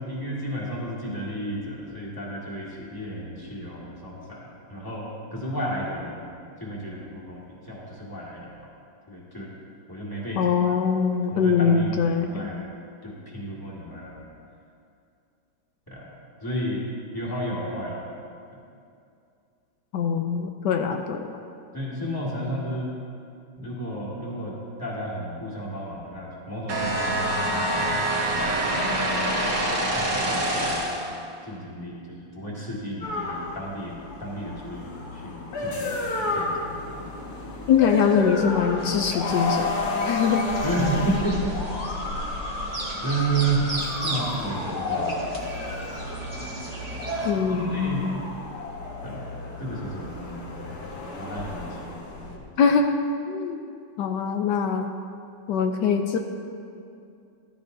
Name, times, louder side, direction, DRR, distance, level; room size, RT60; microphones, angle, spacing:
voice 1, 0.0-6.3 6.6-8.7 9.1-9.5 9.9-10.7 11.3-12.6 13.0-14.3 15.9-16.1 16.4-16.8 17.1-18.1 21.7-22.9 23.6-29.4 29.8-30.9 31.4-37.0 40.6-41.6 43.0-43.7 44.0-45.2 47.4-48.1 49.0-49.3 49.6-50.4 50.7-52.4, right 1 dB, 10° left, -5 dB, 1.9 m, -32 dB
voice 2, 10.4-12.5 19.9-21.3 37.7-39.8 40.0-40.4 47.2-48.2 52.6-53.7 54.0-54.9 55.5-56.2, left 6 dB, 75° left, 5 dB, 1.1 m, -23 dB
sound 1, 26.7-31.1, right 1 dB, 65° right, 2.5 m, -25 dB
sound 2, 33.0-52.4, left 3 dB, 55° left, 1.7 m, -32 dB
sound 3, 38.8-47.3, right 2 dB, 25° right, 0.9 m, -36 dB
14.0 x 12.5 x 2.7 m, 2.5 s
omnidirectional pair, 2.1 m